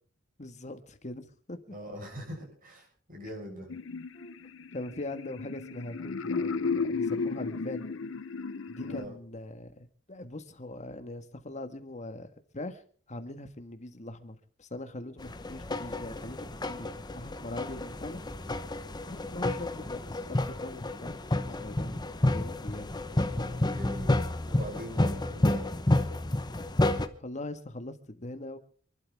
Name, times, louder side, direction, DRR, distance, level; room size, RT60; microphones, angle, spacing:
voice 1, 0.4-1.7 4.1-7.9 8.7-12.8 13.1-18.2 19.1-22.0 22.3-23.0 27.2-28.6, left 1 dB, 35° left, 8 dB, 1.6 m, -41 dB
voice 2, 1.7-3.7 8.9-9.2 23.4-25.6, equal, 45° right, 0 dB, 7.5 m, -42 dB
sound 1, 3.7-9.0, left 4 dB, 75° left, 0.7 m, -34 dB
sound 2, 15.2-27.1, left 1 dB, 20° left, 1.0 m, -30 dB
28.0 x 12.0 x 3.5 m, 0.44 s
head